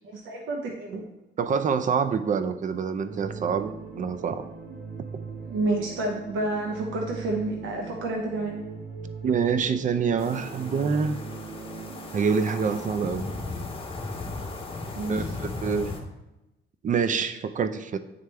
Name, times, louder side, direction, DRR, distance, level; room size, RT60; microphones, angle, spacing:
voice 1, 0.0-1.1 5.5-8.6 14.9-15.3, right 2 dB, 80° right, 0 dB, 0.9 m, -29 dB
voice 2, 1.4-3.7 4.0-4.4 9.2-11.2 12.1-13.3 15.1-15.9 16.8-18.0, right 6 dB, 40° right, 11 dB, 0.5 m, -26 dB
sound 1, 3.0-13.6, right 5 dB, 60° right, 1.3 m, -40 dB
sound 2, 10.2-16.0, left 3 dB, 30° left, 1.2 m, -36 dB
9.4 x 3.4 x 3.3 m, 0.96 s
cardioid pair, 90°, 20 cm